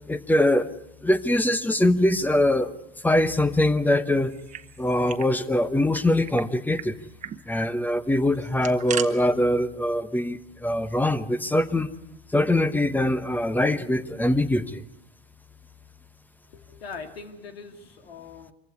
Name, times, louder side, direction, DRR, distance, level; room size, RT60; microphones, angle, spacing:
voice 1, 0.1-0.7 1.0-2.7 3.0-4.3 4.8-7.0 7.5-11.9 12.3-14.8, left 1 dB, 5° left, 15 dB, 1.0 m, -23 dB
sound 1, 4.2-5.3 5.6-5.7 5.9-6.5 6.8-6.9 7.2-7.4 8.3-9.1, right 9 dB, 25° right, 1.3 m, -36 dB
voice 2, 16.5-18.5, left 5 dB, 90° left, 7 dB, 2.5 m, -41 dB
24.5 x 15.5 x 9.7 m, 0.85 s
hypercardioid pair, 105°, 29 cm